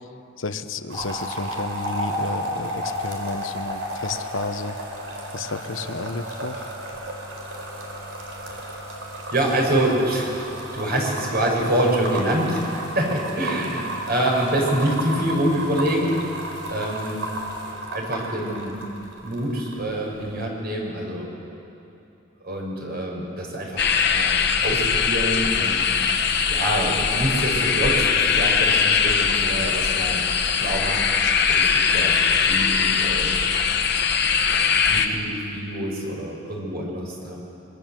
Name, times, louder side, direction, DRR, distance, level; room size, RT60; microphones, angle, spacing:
voice 1, 0.4-4.8 5.3-6.7, left 3 dB, 90° left, 9 dB, 1.2 m, -31 dB
sound 1, 0.9-19.8 20.1-20.5, right 1 dB, 70° right, 4.5 m, -33 dB
voice 2, 9.3-10.3 10.7-16.3 16.7-17.2 17.9-18.7 19.2-21.3 22.4-25.9 26.5-30.2 30.5-31.0 31.5-32.2 32.4-33.3 34.5-37.4, right 1 dB, 55° right, -1 dB, 6.6 m, -26 dB
sound 2, 23.8-35.1, left 6 dB, 60° left, 1.4 m, -21 dB
26.0 x 23.5 x 7.7 m, 2.8 s
head